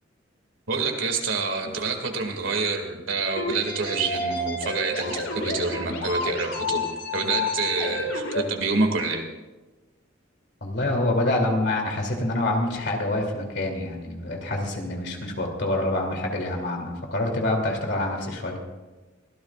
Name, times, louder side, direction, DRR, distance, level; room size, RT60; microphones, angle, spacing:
voice 1, 0.7-6.8 7.1-9.2, right 4 dB, 85° right, 4 dB, 2.3 m, -27 dB
sound 1, 3.4-8.4, left 2 dB, 80° left, 2.9 m, -30 dB
voice 2, 10.6-18.6, left 1 dB, 60° left, 1 dB, 2.9 m, -26 dB
23.5 x 16.0 x 2.5 m, 1.2 s
head